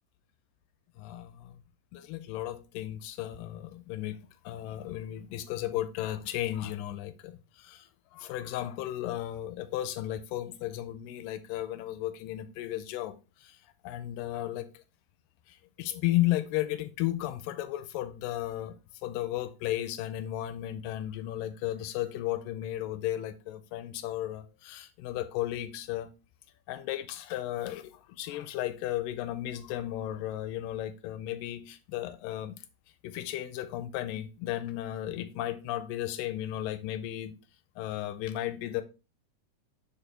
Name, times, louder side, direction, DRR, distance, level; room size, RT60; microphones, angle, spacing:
voice 1, 1.0-1.5 1.9-4.2 4.5-13.2 13.4-13.6 13.8-14.8 15.5-18.7 19.0-26.1 26.7-32.6 33.0-37.3 37.8-38.8, left 13 dB, 90° left, 2.3 m, -34 dB
5.0 x 5.0 x 4.3 m
omnidirectional pair, 3.8 m